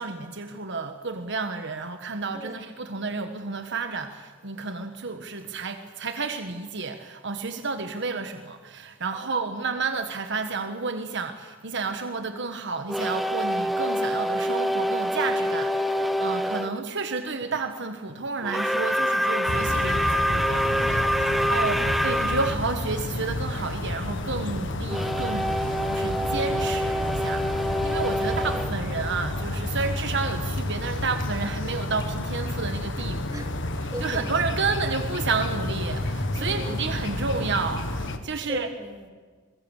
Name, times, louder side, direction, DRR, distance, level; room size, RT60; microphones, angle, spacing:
voice 1, 0.0-20.7 21.2-33.4 34.0-38.7, right 4 dB, 60° right, 7 dB, 1.4 m, -31 dB
voice 2, 9.1-9.6 20.7-21.9 33.3-33.5 33.9-34.4 36.4-36.9 38.4-39.1, equal, 20° right, 3 dB, 3.1 m, -39 dB
sound 1, 12.9-16.7 18.4-22.6 24.9-29.7, equal, ahead, 0.8 m, -26 dB
sound 2, 19.5-38.2, left 1 dB, 65° left, 1.6 m, -30 dB
22.5 x 22.0 x 7.2 m, 1.5 s
head